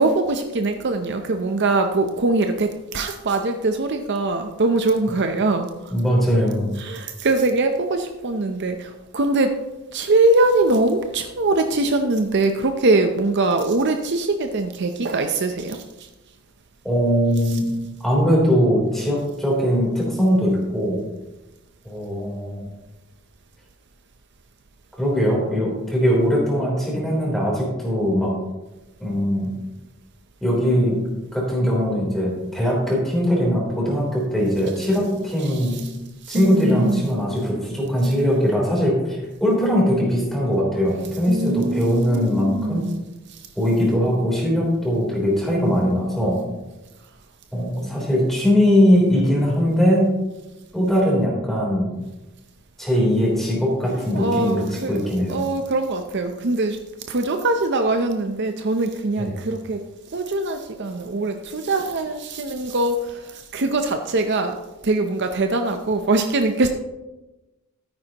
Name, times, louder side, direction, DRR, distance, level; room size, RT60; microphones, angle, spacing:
voice 1, 0.0-5.9 6.8-9.6 9.9-16.1 35.4-35.9 36.2-37.1 41.3-43.0 43.3-43.5 54.0-55.0 55.3-56.8 57.1-66.7, right 2 dB, 50° right, 6 dB, 0.6 m, -22 dB
voice 2, 5.9-6.7 16.8-17.7 18.0-21.0 21.8-22.7 25.0-28.3 29.0-29.5 30.4-31.0 31.3-35.7 36.3-42.9 43.5-46.4 47.5-50.1 50.7-52.0 52.8-55.4 59.2-59.3, equal, ahead, -4 dB, 3.4 m, -20 dB
13.5 x 9.7 x 2.9 m, 1.1 s
head